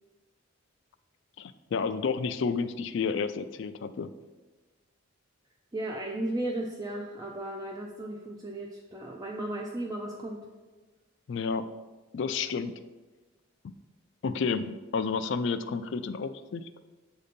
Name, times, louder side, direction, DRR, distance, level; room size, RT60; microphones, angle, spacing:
voice 1, 1.4-4.1 11.3-11.7 12.1-12.7 14.2-16.7, left 5 dB, 60° left, 12 dB, 0.3 m, -30 dB
voice 2, 5.7-10.4, right 1 dB, 15° right, -1 dB, 0.4 m, -35 dB
7.5 x 2.7 x 5.1 m, 1.2 s
head